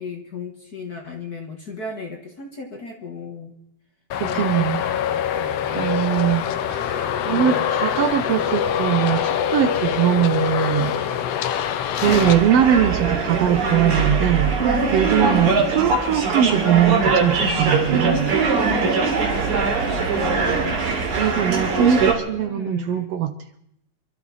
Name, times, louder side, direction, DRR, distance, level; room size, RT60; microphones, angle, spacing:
voice 1, 0.0-3.6 4.2-6.1 7.2-7.7 15.2-15.9 19.0-20.8 21.4-21.9 22.4-22.9, left 4 dB, 40° left, 3 dB, 1.6 m, -35 dB
Traffic noise roadway noise, 4.1-12.3, left 9 dB, 70° left, 1.8 m, -24 dB
voice 2, 4.2-4.8 5.7-11.0 11.9-14.5 14.9-18.4 21.2-22.0 22.3-23.4, right 9 dB, 70° right, 8 dB, 1.6 m, -21 dB
sound 1, 12.0-22.1, right 4 dB, 85° right, 4.2 m, -21 dB
27.5 x 13.0 x 4.1 m, 0.77 s
omnidirectional pair, 3.3 m